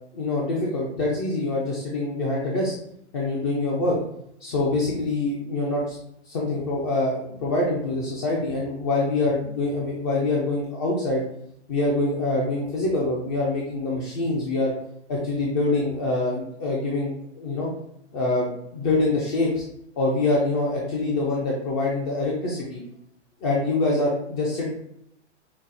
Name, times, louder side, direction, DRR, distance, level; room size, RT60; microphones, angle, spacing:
voice 1, 0.1-2.7 3.1-4.0 4.4-6.0 6.3-11.2 11.7-14.7 15.1-17.7 18.1-19.6 20.0-22.8 23.4-24.7, left 2 dB, 20° left, -4 dB, 0.4 m, -25 dB
5.7 x 2.0 x 2.5 m, 0.75 s
hypercardioid pair, 140°, 36 cm